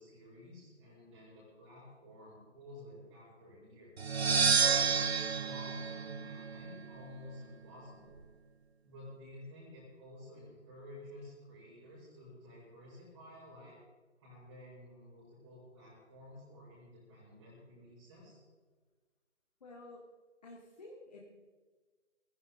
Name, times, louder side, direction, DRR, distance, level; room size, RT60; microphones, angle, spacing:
voice 1, 0.0-4.0 4.6-8.2 8.8-13.7 14.2-18.4, left 1 dB, 25° right, -8 dB, 6.0 m, -52 dB
sound 1, 4.0-6.8, right 6 dB, 60° right, 0.7 m, -30 dB
voice 2, 19.6-20.0 20.4-21.3, left 2 dB, 35° left, -2 dB, 2.3 m, -51 dB
19.5 x 15.5 x 3.6 m, 1.4 s
figure-of-eight pair, 155°, 36 cm